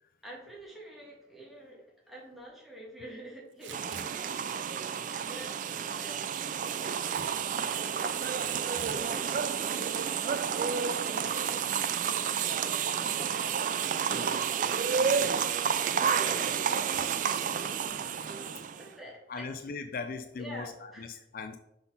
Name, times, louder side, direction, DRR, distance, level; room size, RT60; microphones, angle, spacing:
voice 1, 0.2-6.3 6.7-16.9 17.5-17.7 18.2-18.5 18.8-19.5 20.4-21.1, right 1 dB, ahead, -4 dB, 1.8 m, -48 dB
Packing tape duct tape / Tearing, 3.5-4.1 7.1-7.3 8.4-9.1 9.5-9.6 10.2-10.9 11.1-11.2 11.6-11.7 13.7-13.9 14.9-15.2 15.5-15.6 15.9-16.2 17.3-17.5, right 7 dB, 90° right, 0.6 m, -46 dB
sound 1, 3.7-18.9, right 7 dB, 45° right, 0.3 m, -30 dB
voice 2, 19.3-21.6, left 4 dB, 50° left, 8 dB, 0.4 m, -39 dB
5.9 x 4.0 x 5.5 m, 0.82 s
head